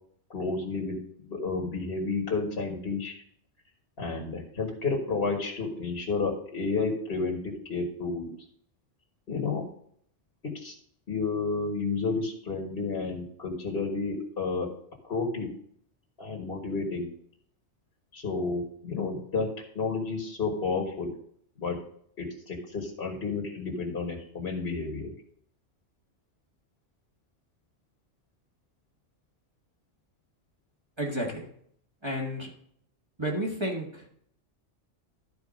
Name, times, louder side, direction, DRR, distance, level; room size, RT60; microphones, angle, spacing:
voice 1, 0.3-3.1 4.0-8.3 9.3-9.7 10.4-10.7 11.1-14.7 15.0-15.5 16.2-17.1 18.1-21.2 21.6-21.8 22.2-25.1, left 4 dB, 50° left, 0 dB, 1.8 m, -31 dB
voice 2, 31.0-31.5 32.0-32.5 33.2-34.0, equal, 20° right, -3 dB, 1.8 m, -31 dB
12.0 x 4.7 x 5.1 m, 0.65 s
omnidirectional pair, 1.3 m